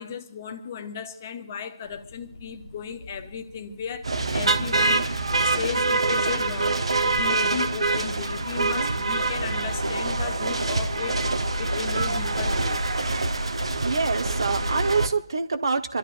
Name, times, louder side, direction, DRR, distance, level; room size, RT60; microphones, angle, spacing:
voice 1, 0.0-5.1 5.4-11.2 11.6-12.8, left 7 dB, 30° left, 0.9 m, -35 dB
sound 1, 1.8-14.4, left 2 dB, 65° left, 0.6 m, -41 dB
sound 2, 4.0-15.1, right 3 dB, 75° right, 1.1 m, -25 dB
voice 2, 13.8-16.0, right 4 dB, 50° right, 1.0 m, -25 dB
28.0 x 12.5 x 2.5 m
figure-of-eight pair, 160°, 3 cm